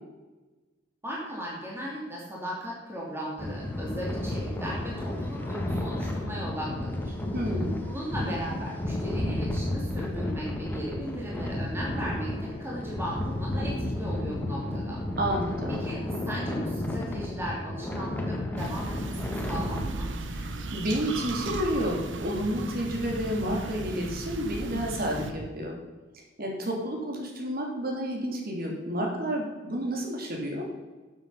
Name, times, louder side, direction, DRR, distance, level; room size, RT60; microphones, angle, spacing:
voice 1, 1.0-7.1 7.9-15.0 15.7-20.1, equal, 15° right, -4 dB, 2.7 m, -37 dB
sound 1, 3.4-19.8, left 1 dB, 10° left, 1.6 m, -32 dB
voice 2, 7.3-7.8 15.2-15.8 20.3-20.4 20.7-25.7 26.4-30.7, equal, 50° right, 0 dB, 3.0 m, -30 dB
sound 2, 18.6-25.3, right 2 dB, 70° right, 1.0 m, -36 dB
11.5 x 7.7 x 5.6 m, 1.2 s
head